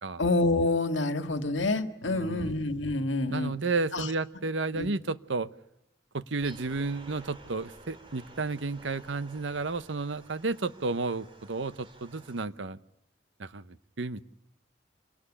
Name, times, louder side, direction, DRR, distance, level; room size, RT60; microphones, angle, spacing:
voice 1, 0.2-3.5 3.9-4.1 4.7-4.9, left 2 dB, 80° left, 9 dB, 1.8 m, -27 dB
voice 2, 2.0-2.5 3.3-5.5 6.1-12.8 13.4-14.2, right 3 dB, 80° right, 15 dB, 0.9 m, -32 dB
sound 1, 6.4-12.5, right 1 dB, 25° right, 3.1 m, -52 dB
26.0 x 18.5 x 9.9 m, 0.82 s
head